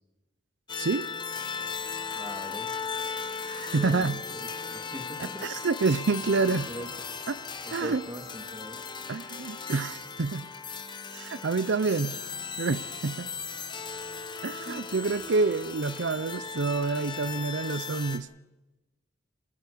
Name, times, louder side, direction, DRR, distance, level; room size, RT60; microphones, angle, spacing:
sound 1, 0.7-18.2, left 5 dB, 25° left, 1.2 m, -37 dB
voice 1, 2.2-2.7 3.7-5.5 6.5-6.9 7.6-8.8 14.6-14.9, right 1 dB, 20° right, 6 dB, 2.1 m, -41 dB
voice 2, 3.5-4.2 5.2-6.7 7.3-7.4 7.7-8.0 9.1-10.5 11.1-12.2 12.6-13.3 14.4-18.3, right 4 dB, 80° right, 15 dB, 0.6 m, -28 dB
25.0 x 15.0 x 6.8 m, 1.1 s
head